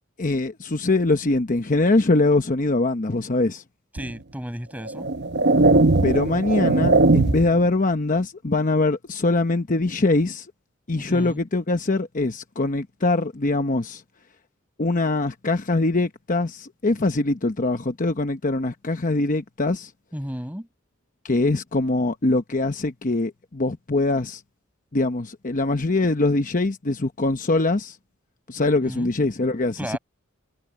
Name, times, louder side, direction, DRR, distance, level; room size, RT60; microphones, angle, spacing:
voice 1, 0.2-3.6 6.0-10.5 10.9-14.0 14.8-19.9 21.2-24.4 24.9-28.0 28.5-30.0, left 2 dB, 40° left, 0.9 m, -23 dB
voice 2, 3.9-5.1 11.0-11.4 20.1-20.7 28.8-29.1 29.8-30.0, equal, 10° right, 7.9 m, -33 dB
sound 1, 4.0-4.1 4.9-7.6, right 2 dB, 55° right, 0.9 m, -19 dB
head